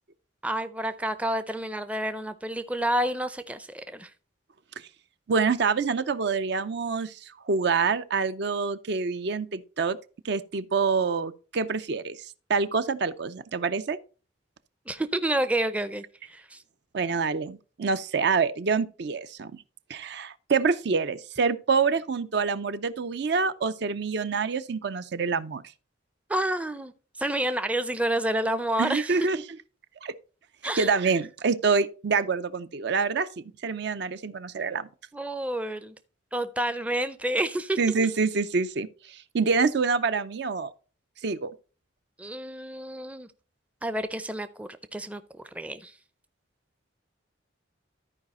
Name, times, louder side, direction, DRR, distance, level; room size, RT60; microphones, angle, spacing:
voice 1, 0.4-4.1 14.9-16.6 26.3-26.9 27.2-29.2 30.6-30.9 35.1-35.9 36.3-37.8 42.2-43.3 43.8-45.2 45.5-45.9, right 1 dB, 5° right, 0.4 m, -29 dB
voice 2, 5.3-7.1 7.5-10.0 10.2-12.2 12.5-14.0 16.9-19.5 19.9-25.6 28.8-29.4 30.0-30.1 30.8-33.3 33.6-34.9 37.8-38.9 39.3-40.7 41.2-41.5, right 5 dB, 60° right, 0.5 m, -26 dB
13.0 x 4.8 x 4.2 m
head